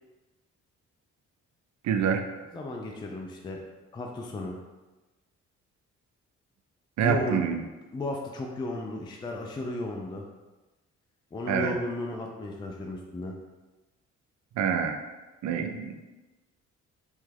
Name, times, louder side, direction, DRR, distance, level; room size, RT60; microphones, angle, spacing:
voice 1, 1.8-2.2 7.0-7.6 11.5-11.7 14.6-15.0 15.4-15.9, right 7 dB, 65° right, 5 dB, 0.5 m, -26 dB
voice 2, 2.5-3.6 3.9-4.6 7.0-7.4 7.9-10.2 11.3-13.4, left 2 dB, 15° left, 1 dB, 0.3 m, -34 dB
3.0 x 2.3 x 3.2 m, 1.1 s
cardioid pair, 90°, 30 cm